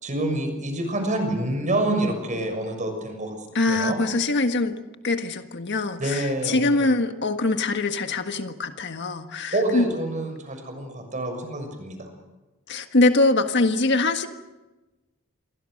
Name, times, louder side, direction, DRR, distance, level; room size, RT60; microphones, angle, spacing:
voice 1, 0.0-3.4 3.7-4.0 6.0-6.7 9.5-12.1, right 1 dB, 35° right, 6 dB, 6.5 m, -27 dB
voice 2, 3.5-4.8 5.0-9.9 12.7-14.3, left 2 dB, 55° left, 7 dB, 1.6 m, -23 dB
28.5 x 23.0 x 6.6 m, 1.1 s
head